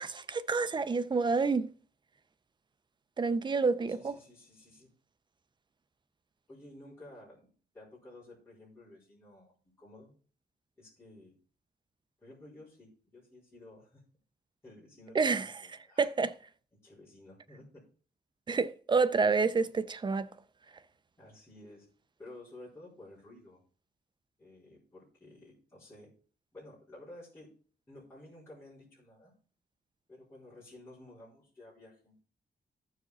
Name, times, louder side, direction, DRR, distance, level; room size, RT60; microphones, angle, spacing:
voice 1, 0.0-1.7 3.2-4.1 15.1-15.5 16.0-16.3 18.5-20.3, right 4 dB, 25° right, 0.4 m, -28 dB
voice 2, 3.9-4.9 6.5-7.5 7.7-9.5 9.8-10.1 10.8-11.3 12.2-14.0 14.6-16.1 16.8-17.8 21.2-21.9 22.2-23.6 24.4-26.1 26.5-27.5 27.9-29.3 30.1-32.2, left 1 dB, 15° left, 4.3 m, -53 dB
14.5 x 4.8 x 4.0 m
wide cardioid pair, 175°, 18 cm